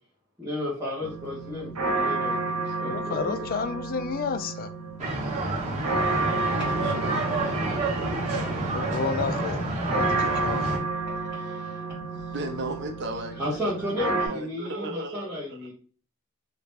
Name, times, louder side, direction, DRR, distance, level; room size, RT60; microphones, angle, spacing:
voice 1, 0.4-3.5 8.3-8.4 11.1-11.8 12.3-12.4 13.4-15.7, left 1 dB, 5° right, -10 dB, 1.2 m, -33 dB
sound 1, 1.0-14.3, right 3 dB, 85° right, 1.0 m, -31 dB
voice 2, 2.8-4.7 8.7-9.6 9.9-10.9, left 5 dB, 40° left, 11 dB, 0.3 m, -31 dB
sound 2, 5.0-10.8, right 2 dB, 35° right, 1.5 m, -28 dB
voice 3, 6.2-7.3 12.3-15.6, right 1 dB, 55° right, 5 dB, 0.7 m, -36 dB
2.9 x 2.8 x 3.4 m, 0.41 s
head